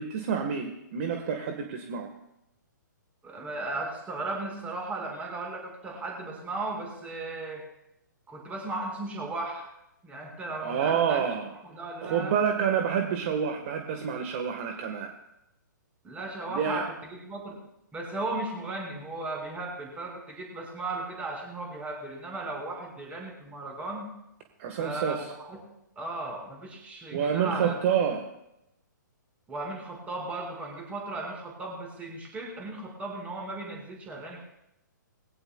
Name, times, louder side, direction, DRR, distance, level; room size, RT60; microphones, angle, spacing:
voice 1, 0.0-2.1 10.6-11.5 12.0-15.1 16.5-16.8 24.6-25.3 27.1-28.3, right 7 dB, 40° right, 4 dB, 1.6 m, -28 dB
voice 2, 3.2-7.6 8.3-9.7 10.0-11.2 11.6-12.3 16.0-17.6 17.9-24.1 24.8-25.6 26.0-27.7 29.5-34.5, right 2 dB, 15° right, -1 dB, 5.6 m, -36 dB
22.0 x 16.5 x 2.4 m, 0.86 s
figure-of-eight pair, 125°, 11 cm